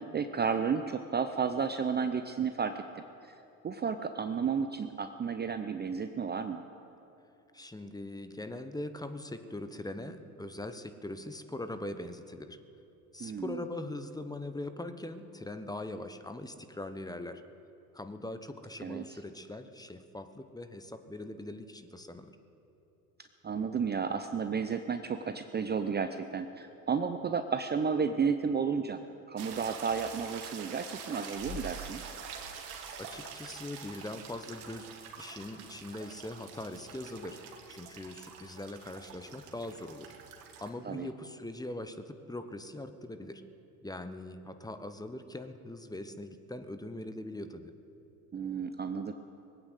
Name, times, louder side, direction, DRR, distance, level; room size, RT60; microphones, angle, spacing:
voice 1, 0.0-3.0 3.6-6.6 13.2-13.6 18.8-19.2 23.4-29.0 29.3-32.0 40.8-41.1 48.3-49.1, right 6 dB, 25° right, 8 dB, 0.6 m, -32 dB
voice 2, 7.5-12.6 13.1-17.4 17.9-22.3 33.0-34.9 35.2-37.4 37.7-40.1 40.6-43.4 43.8-47.7, left 1 dB, 10° left, 9 dB, 1.0 m, -41 dB
sound 1, 29.4-40.7, right 5 dB, 85° right, 1.8 m, -45 dB
19.5 x 8.9 x 8.1 m, 2.9 s
hypercardioid pair, 75°, 44 cm